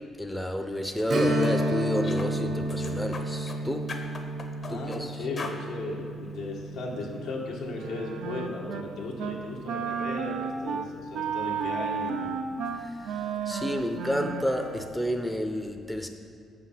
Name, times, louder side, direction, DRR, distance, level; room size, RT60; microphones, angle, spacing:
voice 1, 0.2-3.9 4.7-5.2 12.8-16.1, equal, 5° left, 5 dB, 0.6 m, -31 dB
sound 1, 0.8-1.0 1.4-1.6 2.0-2.3 2.7-3.6 3.9-5.0 5.4-5.6, left 4 dB, 45° left, 0.8 m, -40 dB
Strum, 1.1-10.3 10.6-10.7 13.3-13.4 13.9-14.0, right 1 dB, 55° right, 0.9 m, -32 dB
voice 2, 4.6-10.4 10.6-12.3, left 3 dB, 90° left, -2 dB, 1.4 m, -36 dB
Wind instrument woodwind instrument, 7.7-8.9 9.2-9.4 9.7-15.0, right 6 dB, 90° right, 0.5 m, -33 dB
7.1 x 5.9 x 5.7 m, 2.4 s
cardioid pair, 90°, 0 cm